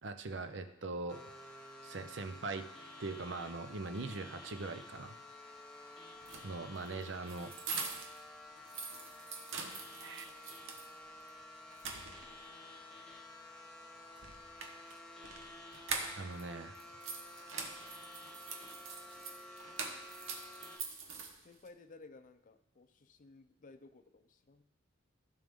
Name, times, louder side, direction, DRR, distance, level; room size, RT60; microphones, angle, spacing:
voice 1, 0.0-1.2 1.8-2.7 3.0-5.1 6.4-7.5 10.0-10.3 16.2-16.8, right 3 dB, 65° right, 8 dB, 0.7 m, -41 dB
sound 1, 1.1-20.8, left 2 dB, 5° left, 1.2 m, -52 dB
sound 2, 6.2-8.2 8.6-10.9 11.3-11.4 11.7-12.5 14.2-16.4 16.7-21.7, right 4 dB, 85° right, 1.1 m, -44 dB
voice 2, 12.0-12.9 21.4-24.6, left 3 dB, 40° left, 10 dB, 0.5 m, -58 dB
15.5 x 5.3 x 3.6 m, 0.94 s
head